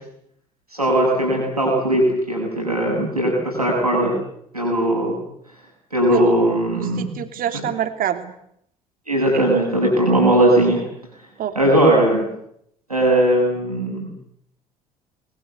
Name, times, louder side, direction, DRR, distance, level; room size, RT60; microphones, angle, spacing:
voice 1, 0.7-4.1 4.5-5.2 5.9-7.1 9.1-10.8 11.5-12.2 12.9-14.1, right 1 dB, 90° right, -2 dB, 7.3 m, -18 dB
voice 2, 7.0-8.3 11.4-11.8, right 10 dB, 50° right, 8 dB, 3.1 m, -26 dB
26.5 x 21.5 x 8.2 m, 0.71 s
figure-of-eight pair, 50°, 19 cm